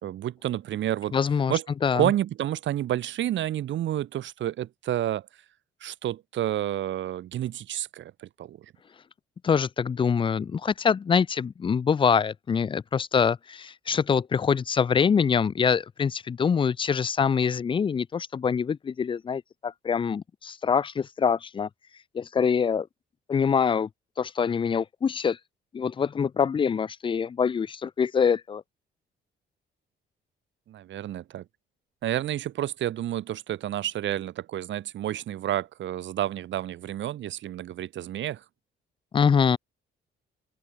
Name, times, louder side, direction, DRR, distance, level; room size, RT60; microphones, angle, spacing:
voice 1, 0.0-1.2 1.5-1.6 1.9-5.3 5.8-8.6 30.7-31.4 32.0-38.4, right 12 dB, 70° right, 1.2 m, -30 dB
voice 2, 1.1-1.5 1.8-2.1 9.4-21.7 22.1-22.9 23.3-23.9 24.2-25.4 25.7-28.6 39.1-39.6, left 6 dB, 25° left, 0.4 m, -24 dB
open air
cardioid pair, 90°, 20 cm